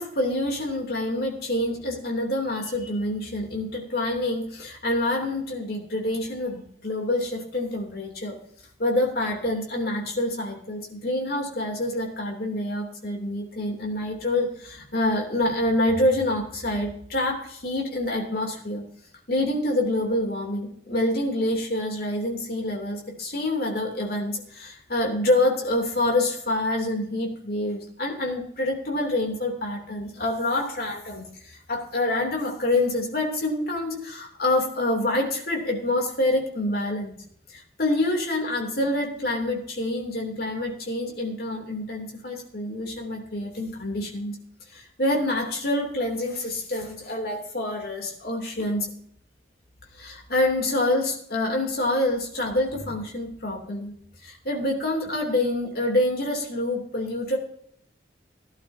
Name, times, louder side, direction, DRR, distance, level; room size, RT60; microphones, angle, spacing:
voice 1, 0.0-8.4 8.8-18.8 19.3-37.1 37.5-44.4 44.7-48.9 50.0-53.9 54.2-57.4, left 1 dB, 55° left, 1 dB, 2.9 m, -27 dB
16.5 x 11.5 x 2.8 m, 0.67 s
head